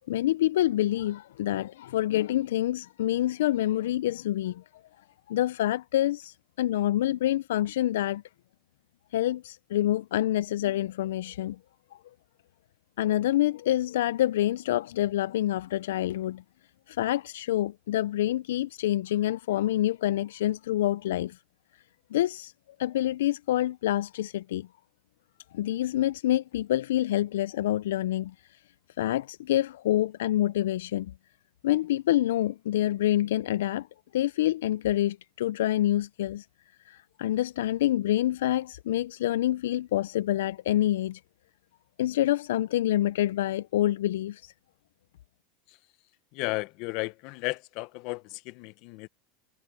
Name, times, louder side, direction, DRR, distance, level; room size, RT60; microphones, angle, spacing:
voice 1, 0.1-4.6 5.3-8.2 9.1-11.6 11.9-12.0 13.0-16.4 16.9-21.4 22.1-22.5 22.8-24.7 25.5-28.3 29.0-31.1 31.6-33.9 34.1-36.4 36.9-41.2 42.0-44.5, left 13 dB, 85° left, 0.3 m, -27 dB
voice 2, 46.3-49.1, left 23 dB, 60° left, 0.8 m, -34 dB
supercardioid pair, 120°, 0 cm